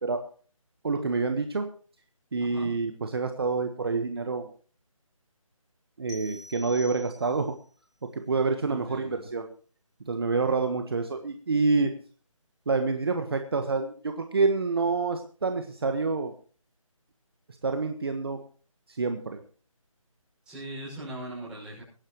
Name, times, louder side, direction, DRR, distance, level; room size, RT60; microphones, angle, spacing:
voice 1, 0.8-1.7 2.3-4.5 6.0-7.5 8.0-9.5 10.1-11.9 12.7-16.3 17.6-18.4 18.9-19.4, right 4 dB, 45° right, 6 dB, 1.4 m, -27 dB
voice 2, 2.4-2.7 8.7-9.3 20.4-21.8, right 1 dB, 5° right, -8 dB, 6.4 m, -40 dB
sound 1, 6.1-7.6, left 2 dB, 55° left, 4.3 m, -46 dB
24.5 x 9.9 x 3.1 m, 0.42 s
figure-of-eight pair, 170°, 18 cm